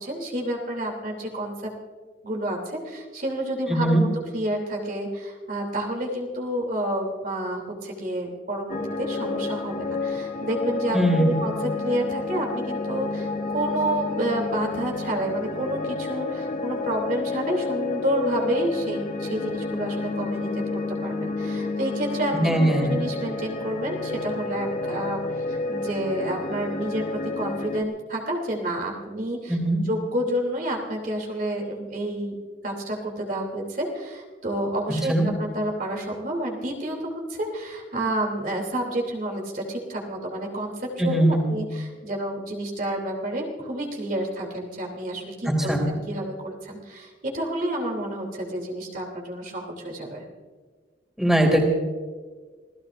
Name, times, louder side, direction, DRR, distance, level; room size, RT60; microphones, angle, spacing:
voice 1, 0.0-1.7 2.2-25.2 25.5-29.6 29.8-32.4 32.6-50.2, right 1 dB, 50° right, 0 dB, 3.1 m, -29 dB
voice 2, 3.7-4.1 10.9-11.4 22.3-22.9 29.5-29.8 35.1-35.3 41.0-41.5 45.5-45.8 51.2-51.6, right 1 dB, 5° right, 0 dB, 3.3 m, -21 dB
sound 1, 8.7-27.8, left 3 dB, 50° left, 1.2 m, -30 dB
28.0 x 18.0 x 2.6 m, 1.4 s
head